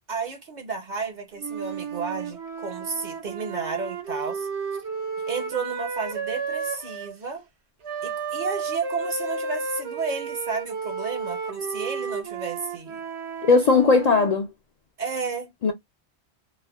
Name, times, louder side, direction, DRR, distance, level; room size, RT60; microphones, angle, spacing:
voice 1, 0.1-4.5 5.3-7.4 8.0-13.0 15.0-15.5, right 4 dB, 50° right, 0.7 m, -32 dB
Wind instrument woodwind instrument, 1.4-7.1 7.8-14.3, right 5 dB, 85° right, 1.0 m, -32 dB
voice 2, 13.5-14.5 15.6-15.7, left 4 dB, 55° left, 0.4 m, -18 dB
3.2 x 2.1 x 2.2 m
omnidirectional pair, 1.1 m